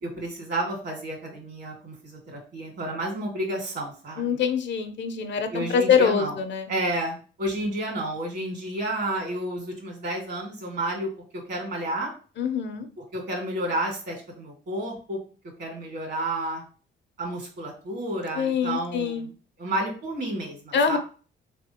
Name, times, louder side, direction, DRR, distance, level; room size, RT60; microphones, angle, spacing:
voice 1, 0.0-4.4 5.5-6.3 6.7-11.1 11.5-12.1 13.1-15.2 15.6-16.6 17.2-19.3 19.6-21.0, right 1 dB, 60° right, 1 dB, 2.0 m, -31 dB
voice 2, 4.2-6.7 12.4-12.9 18.3-19.3 20.7-21.0, left 6 dB, 65° left, 8 dB, 0.6 m, -24 dB
3.5 x 3.4 x 2.8 m, 0.38 s
cardioid pair, 90°, 20 cm